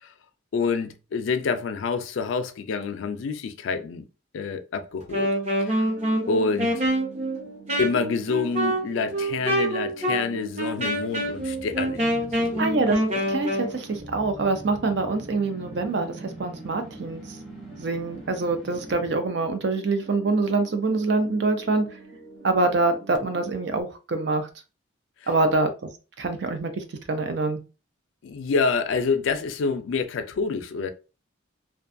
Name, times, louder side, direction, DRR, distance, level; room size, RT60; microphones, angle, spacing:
voice 1, 0.5-4.1 4.3-5.3 5.6-5.9 6.3-6.7 7.8-12.0 12.4-12.6 28.2-30.9, left 4 dB, 70° left, 0.4 m, -27 dB
Wind instrument woodwind instrument, 5.0-13.7, right 1 dB, 35° right, 0.8 m, -26 dB
sound 1, 5.4-23.8, right 3 dB, 85° right, 0.8 m, -46 dB
sound 2, 10.6-19.3, equal, ahead, 0.6 m, -44 dB
voice 2, 12.6-13.0 13.3-17.2 17.8-21.8 22.4-24.5 25.3-25.7 26.2-27.6, right 3 dB, 55° right, 0.4 m, -25 dB
2.5 x 2.2 x 2.5 m
head